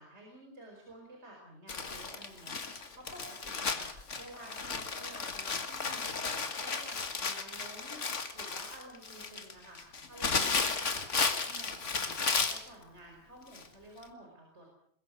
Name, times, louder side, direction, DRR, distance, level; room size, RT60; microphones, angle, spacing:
voice 1, 0.0-8.0 8.3-11.1 11.4-12.2 12.5-14.7, right 1 dB, 70° right, 0 dB, 5.2 m, -52 dB
Crumpling crinkling, 1.7-12.7 13.5-13.7 14.0-14.1, left 4 dB, 85° left, 2.1 m, -34 dB
22.0 x 21.5 x 6.3 m, 0.66 s
omnidirectional pair, 1.2 m